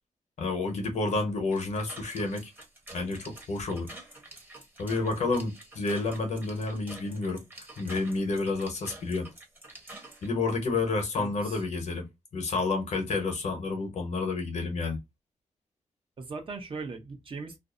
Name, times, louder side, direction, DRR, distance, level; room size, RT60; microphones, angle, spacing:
voice 1, 0.4-2.5 2.9-3.9 4.8-7.4 7.8-9.3 10.2-12.1 12.3-15.0, left 3 dB, 70° left, 0.9 m, -30 dB
sound 1, 1.5-10.3, right 2 dB, 15° right, 0.9 m, -48 dB
voice 2, 11.1-11.6 16.2-17.6, right 4 dB, 45° right, 0.7 m, -39 dB
2.5 x 2.0 x 2.4 m
wide cardioid pair, 100°, 12 cm